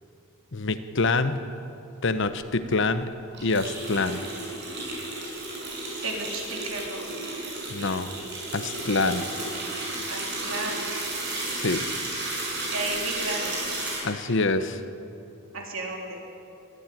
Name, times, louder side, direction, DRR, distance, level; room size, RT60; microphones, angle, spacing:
voice 1, 0.5-1.4 2.0-3.1 3.4-4.2 7.7-8.1 8.5-9.3 11.5-11.8 14.0-14.8, left 3 dB, 60° left, 10 dB, 1.1 m, -25 dB
sound 1, 3.3-14.0, right 2 dB, 55° right, 7.3 m, -33 dB
voice 2, 6.0-7.1 10.1-10.9 12.7-13.6 15.5-16.2, right 2 dB, 70° right, 0 dB, 3.4 m, -33 dB
22.0 x 15.0 x 9.2 m, 2.7 s
head